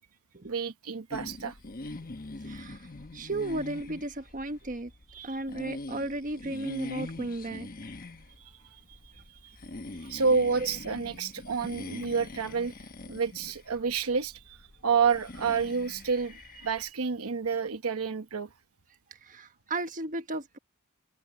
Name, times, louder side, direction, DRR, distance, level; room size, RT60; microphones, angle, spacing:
voice 1, 0.4-1.6 5.1-5.4 8.4-8.8 9.4-9.6 10.0-12.7 13.1-14.6 14.8-18.5, right 5 dB, 75° right, 1.0 m, -29 dB
sound 1, 1.1-16.9, left 2 dB, 40° left, 1.2 m, -43 dB
voice 2, 2.4-4.9 5.2-7.7 9.9-10.0 10.6-10.7 19.2-20.6, right 2 dB, 35° right, 1.3 m, -35 dB
head